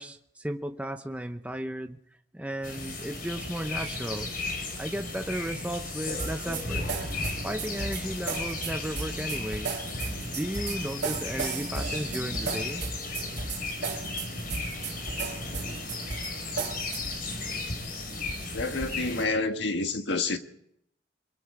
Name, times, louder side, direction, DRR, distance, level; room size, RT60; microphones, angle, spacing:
voice 1, 0.0-2.0 2.3-4.3 4.8-6.9 7.4-9.9 10.3-12.8, right 1 dB, 5° right, 0.8 m, -34 dB
sound 1, 2.6-19.2, left 2 dB, 50° left, 4.5 m, -35 dB
sound 2, 6.2-17.2, right 4 dB, 60° right, 3.1 m, -35 dB
voice 2, 18.5-20.4, left 3 dB, 65° left, 1.6 m, -28 dB
24.5 x 22.5 x 4.8 m
head